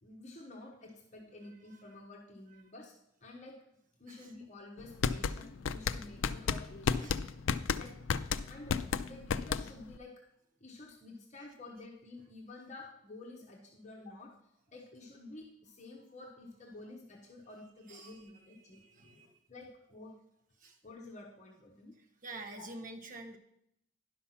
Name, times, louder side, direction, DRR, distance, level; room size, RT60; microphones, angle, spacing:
voice 1, 0.0-3.0 3.2-3.6 4.0-7.2 7.7-8.0 8.4-10.2 10.6-14.4 14.7-18.8 19.5-20.2 20.8-21.9 22.6-22.7, left 2 dB, 35° left, 1.1 m, -50 dB
voice 2, 1.4-2.0 2.5-2.6 4.1-4.3 5.1-5.2 7.0-7.2 17.9-19.4 20.6-20.8 22.2-23.4, right 2 dB, 40° right, 1.1 m, -49 dB
sound 1, 4.8-10.0, left 6 dB, 75° left, 0.4 m, -32 dB
10.5 x 5.7 x 5.7 m
head